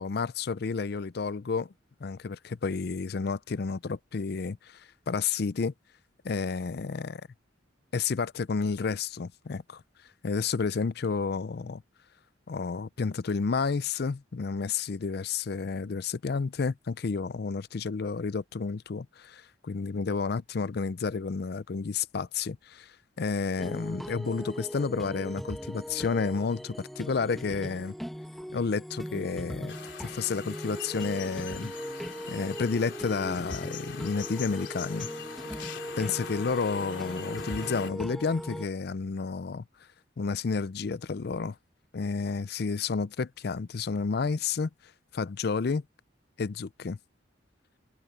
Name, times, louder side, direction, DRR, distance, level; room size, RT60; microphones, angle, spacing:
voice 1, 0.0-1.7 2.0-5.7 6.2-7.2 7.9-9.8 10.2-11.8 12.5-22.9 23.2-27.9 28.5-31.7 32.3-35.1 36.0-39.6 40.2-41.6 41.9-44.7 45.1-45.8 46.4-47.0, left 4 dB, 55° left, 0.5 m, -31 dB
sound 1, 23.6-38.7, equal, ahead, 1.5 m, -39 dB
sound 2, 29.7-37.9, left 6 dB, 70° left, 3.1 m, -42 dB
head